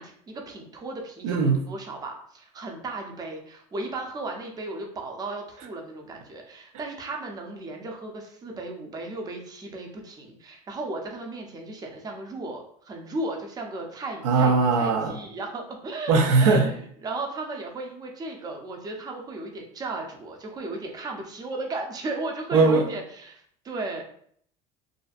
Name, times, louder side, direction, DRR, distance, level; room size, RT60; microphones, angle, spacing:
voice 1, 0.0-24.0, right 2 dB, 25° right, 2 dB, 0.5 m, -35 dB
voice 2, 1.2-1.6 14.2-15.1 16.1-16.7 22.5-22.8, right 4 dB, 90° right, 3 dB, 0.5 m, -19 dB
2.5 x 2.1 x 2.4 m, 0.62 s
supercardioid pair, 110°, 16 cm